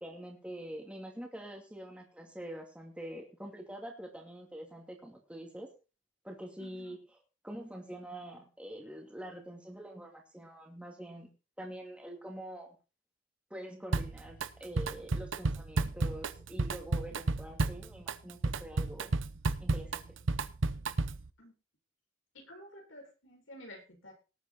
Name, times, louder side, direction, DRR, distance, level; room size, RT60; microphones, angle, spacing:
voice 1, 0.0-5.7 6.2-7.0 7.4-11.3 11.6-12.8 13.5-19.1 19.6-20.2, right 1 dB, 5° right, 1 dB, 2.3 m, -45 dB
voice 2, 6.6-7.0 17.1-17.2 21.4-21.5 22.3-24.1, equal, 80° left, 1 dB, 6.8 m, -51 dB
Drum kit, 13.9-14.5 14.8-21.3, right 3 dB, 75° right, 0.8 m, -32 dB
18.5 x 8.1 x 4.3 m, 0.33 s
head